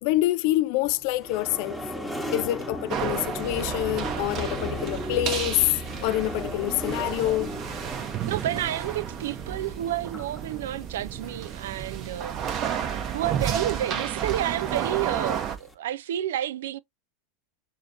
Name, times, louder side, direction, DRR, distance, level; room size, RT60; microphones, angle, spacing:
voice 1, 0.0-1.8 2.3-5.7 6.0-7.5, left 16 dB, 50° left, 0.4 m, -26 dB
sound 1, 0.8-15.7, equal, ahead, 1.1 m, -37 dB
sound 2, 2.9-15.6, right 9 dB, 40° right, 0.8 m, -32 dB
voice 2, 8.3-12.6 13.1-16.8, right 12 dB, 65° right, 0.3 m, -30 dB
6.7 x 2.7 x 2.5 m
figure-of-eight pair, 85°, 0 cm